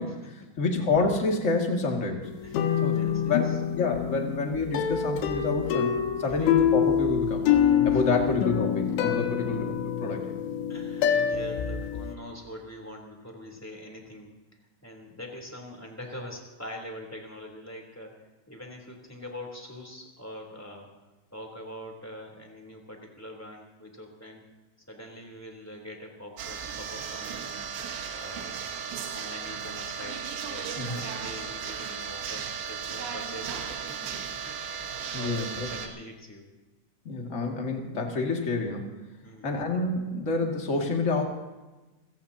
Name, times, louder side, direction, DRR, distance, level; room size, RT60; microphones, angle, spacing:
voice 1, 0.0-2.3 2.8-5.9 6.2-7.5 7.8-10.2 30.8-31.0 35.1-35.7 37.0-38.9 39.4-41.2, left 3 dB, 30° left, 1 dB, 1.3 m, -28 dB
sound 1, 2.2-12.1, left 9 dB, 85° left, 3.5 m, -26 dB
voice 2, 2.4-3.6 6.2-6.5 7.9-8.2 10.7-14.3 14.8-20.9 21.3-24.4 24.9-27.7 28.1-28.6 29.1-36.5 39.2-39.5, equal, 5° left, 1 dB, 2.5 m, -44 dB
sound 2, 26.4-35.9, right 7 dB, 75° right, 3.6 m, -35 dB
29.5 x 17.0 x 2.9 m, 1.1 s
omnidirectional pair, 5.1 m